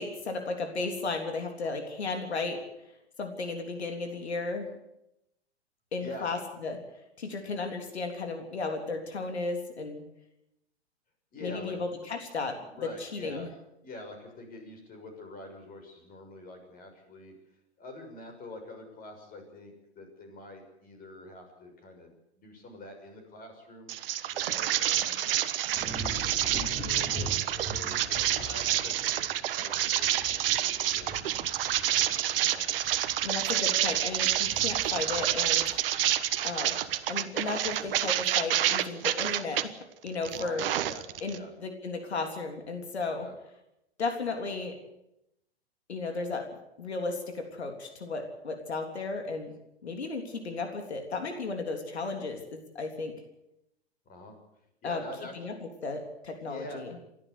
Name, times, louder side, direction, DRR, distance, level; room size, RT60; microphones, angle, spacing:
voice 1, 0.0-2.6 3.2-4.7 5.9-6.8 7.2-10.0 11.4-12.6 13.0-13.5 32.9-33.0 33.2-35.7 36.4-36.8 37.1-39.7 40.0-40.6 41.2-43.3 44.0-44.8 45.9-46.5 46.8-49.5 49.8-53.1 54.8-55.0 55.3-55.5 55.8-57.0, left 3 dB, 75° left, 4 dB, 3.5 m, -34 dB
voice 2, 6.0-6.3 11.3-11.8 12.7-13.5 13.8-17.3 17.8-23.9 24.3-25.2 26.2-32.1 32.4-32.7 40.3-41.5 43.2-43.3 54.0-54.4 54.8-55.5 56.4-56.8, left 2 dB, 25° left, 5 dB, 6.4 m, -46 dB
sound 1, 23.9-39.6 40.1-41.4, right 12 dB, 60° right, 1.3 m, -28 dB
sound 2, 25.7-37.0 37.5-37.9, right 1 dB, 5° left, 4.5 m, -43 dB
29.0 x 12.0 x 8.3 m, 0.85 s
figure-of-eight pair, 110°, 33 cm